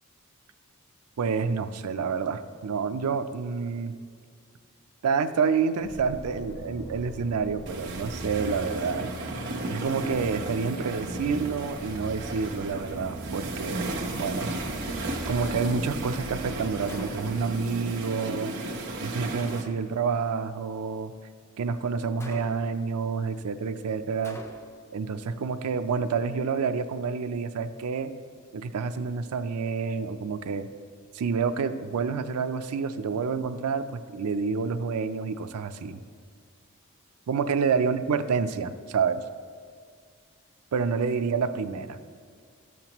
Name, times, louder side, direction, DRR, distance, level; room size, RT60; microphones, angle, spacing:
voice 1, 1.2-3.9 5.0-9.1 9.7-14.5 15.3-18.5 19.0-21.1 21.6-24.4 24.9-28.1 28.5-30.7 31.1-36.0 37.3-39.2 40.7-42.0, right 5 dB, 85° right, 9 dB, 0.4 m, -28 dB
sound 1, 5.8-17.4, equal, 55° left, 1.3 m, -41 dB
sound 2, 7.7-19.6, right 2 dB, 50° right, 0.9 m, -34 dB
Gunshot gunfire, 16.9-17.6 22.2-22.9 24.2-24.9, equal, 10° left, 0.4 m, -45 dB
12.5 x 7.3 x 3.0 m, 2.1 s
head